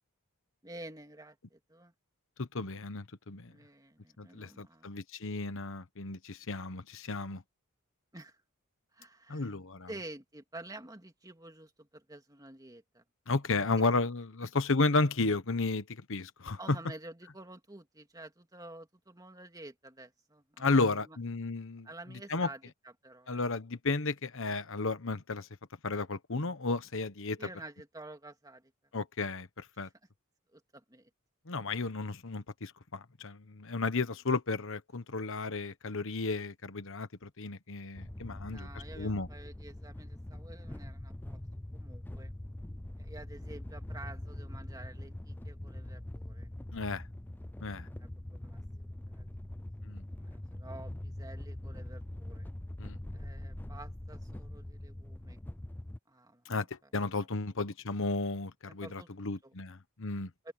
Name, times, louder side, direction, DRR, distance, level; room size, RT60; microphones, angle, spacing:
voice 1, 0.6-1.9 3.5-4.9 8.1-8.4 8.9-9.5 9.9-13.0 16.6-21.2 21.8-23.4 27.4-28.7 29.8-29.9 30.5-31.1 38.4-41.4 41.7-42.3 43.0-46.5 47.9-49.4 50.0-52.5 53.1-55.4 56.1-56.6 58.7-59.5 60.4-60.5, right 2 dB, 15° right, 2.5 m, -50 dB
voice 2, 2.4-3.5 4.2-7.4 9.3-9.9 13.3-16.8 20.6-21.9 22.3-22.5 23.3-25.5 25.8-27.5 28.9-29.9 31.5-38.7 39.0-39.3 46.7-47.0 47.6-47.9 49.8-50.0 52.8-53.0 56.4-60.3, left 3 dB, 60° left, 1.2 m, -33 dB
sound 1, 38.0-56.0, left 1 dB, 10° left, 0.4 m, -43 dB
open air
head